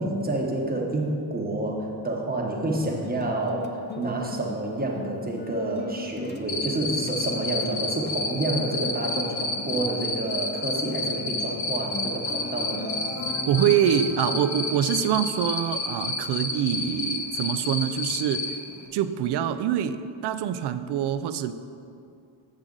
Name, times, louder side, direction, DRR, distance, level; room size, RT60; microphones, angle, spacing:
voice 1, 0.0-12.9, right 2 dB, 20° right, -1 dB, 1.0 m, -29 dB
sound 1, 2.7-15.2, left 3 dB, 25° left, 0.4 m, -40 dB
Cricket, 6.5-18.5, left 3 dB, 85° left, 1.2 m, -29 dB
sound 2, 12.8-15.4, left 2 dB, 10° left, 0.9 m, -41 dB
voice 2, 13.5-18.6 18.9-21.5, right 9 dB, 65° right, 11 dB, 0.5 m, -25 dB
7.5 x 7.4 x 3.8 m, 2.5 s
cardioid pair, 120°, 44 cm